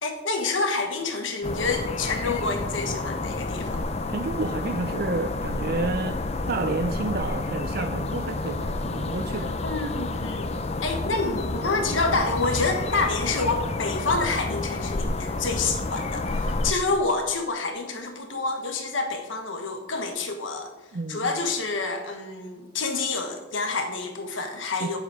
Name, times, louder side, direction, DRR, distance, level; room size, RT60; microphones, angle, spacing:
voice 1, 0.0-3.8 9.3-10.5 10.8-20.7 21.1-25.0, left 3 dB, 90° left, 1.2 m, -28 dB
Birds In Belfast, 1.4-16.7, left 2 dB, 35° left, 0.5 m, -30 dB
voice 2, 4.1-6.2 6.5-9.5 20.9-21.3 24.8-25.0, right 3 dB, 50° right, 0.5 m, -30 dB
9.0 x 7.2 x 4.8 m
head